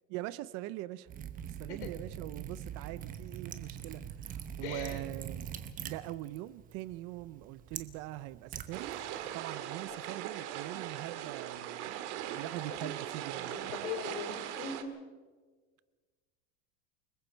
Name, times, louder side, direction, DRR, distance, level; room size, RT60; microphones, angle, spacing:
voice 1, 0.1-1.1 1.6-5.5 5.8-8.9 9.3-13.6, right 16 dB, 45° right, 0.6 m, -42 dB
Liquid, 1.1-9.4, right 9 dB, 25° right, 1.0 m, -44 dB
voice 2, 4.6-5.0 9.9-10.0 12.7-13.0 13.5-15.0, left 6 dB, 70° left, 3.8 m, -41 dB
sound 1, 8.7-14.8, right 11 dB, 75° right, 2.0 m, -40 dB
29.5 x 20.0 x 4.5 m
supercardioid pair, 165°, 36 cm